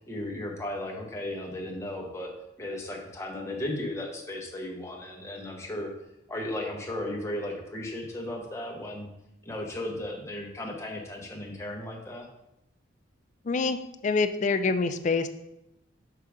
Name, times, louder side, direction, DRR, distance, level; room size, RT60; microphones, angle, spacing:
voice 1, 0.0-5.9 6.3-9.1 9.4-12.3, left 1 dB, 15° left, -1 dB, 0.8 m, -35 dB
voice 2, 13.5-13.8 14.0-15.3, left 4 dB, 35° left, 9 dB, 0.3 m, -25 dB
5.8 x 3.6 x 4.9 m, 0.86 s
head